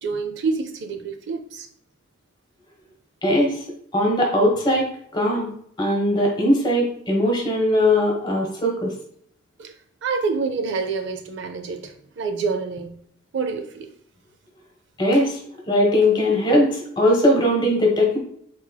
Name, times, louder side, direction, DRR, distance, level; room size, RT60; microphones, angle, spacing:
voice 1, 0.0-1.7 9.6-9.7 10.0-13.0 13.3-13.9, right 4 dB, 55° right, 0.4 m, -27 dB
voice 2, 3.2-3.6 3.9-5.5 5.8-8.9 15.0-15.4 15.7-18.2, left 1 dB, 20° left, 1.1 m, -20 dB
4.4 x 4.2 x 2.2 m
head